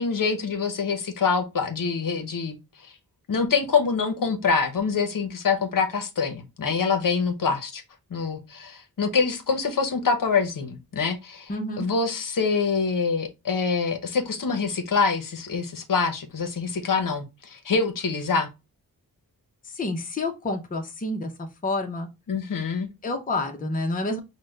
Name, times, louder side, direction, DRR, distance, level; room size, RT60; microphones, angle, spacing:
voice 1, 0.0-2.6 2.8-2.9 3.3-7.8 8.1-11.5 11.8-18.5 22.3-22.9, left 5 dB, 60° left, 0.8 m, -25 dB
voice 2, 11.5-11.9 19.6-22.1 23.0-24.2, left 2 dB, 25° left, 0.6 m, -29 dB
5.0 x 2.2 x 3.2 m
wide cardioid pair, 110°, 37 cm